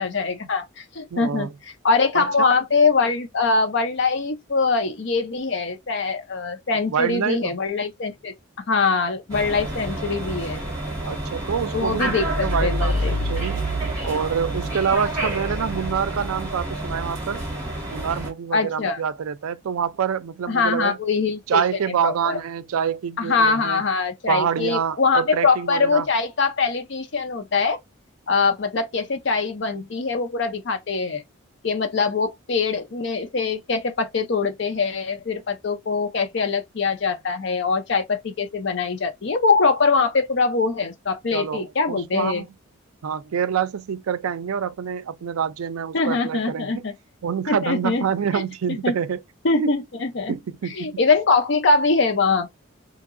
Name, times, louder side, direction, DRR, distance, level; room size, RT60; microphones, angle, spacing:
voice 1, 0.0-1.5 1.8-8.3 8.7-10.6 11.7-13.1 18.5-19.0 20.5-21.6 22.0-22.4 23.2-27.8 28.3-31.2 31.6-42.4 45.9-46.9 47.5-48.0 48.3-48.4 48.8-48.9 49.4-50.3 50.7-52.5, left 4 dB, 55° left, 0.6 m, -23 dB
voice 2, 1.1-1.5 2.1-2.5 6.9-7.5 11.0-13.6 14.0-17.4 17.9-21.0 21.5-23.8 24.3-26.1 41.3-42.5 43.0-46.8 47.2-49.2 49.5-49.7 50.3-51.0, right 7 dB, 85° right, 0.4 m, -26 dB
Estacion de Chamartin II Trenes Pasan Anuncios, 9.3-18.3, right 1 dB, 15° right, 1.5 m, -28 dB
2.8 x 2.8 x 2.5 m
head